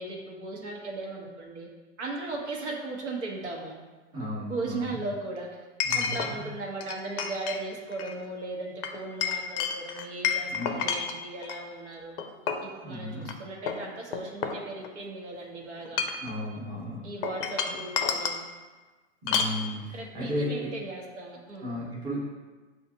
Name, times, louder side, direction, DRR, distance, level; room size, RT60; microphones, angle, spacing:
voice 1, 0.0-1.7 2.0-3.7 4.4-5.6 5.9-12.1 12.6-16.1 17.0-18.4 19.9-21.8, right 2 dB, 70° right, 0 dB, 1.1 m, -37 dB
Chink clink, 2.3-2.4 5.8-6.3 6.8-7.6 7.9-8.2 8.8-11.6 12.2-12.7 13.2-13.3 13.7-15.1 15.8-16.3 17.2-18.4 19.3-19.6, left 6 dB, 50° left, 0.5 m, -30 dB
voice 2, 4.1-5.0 5.8-6.5 10.5-10.8 12.8-13.4 16.2-17.1 19.2-20.7 21.6-22.2, left 1 dB, 10° right, -7 dB, 0.9 m, -34 dB
6.4 x 2.4 x 2.8 m, 1.3 s
hypercardioid pair, 140°, 36 cm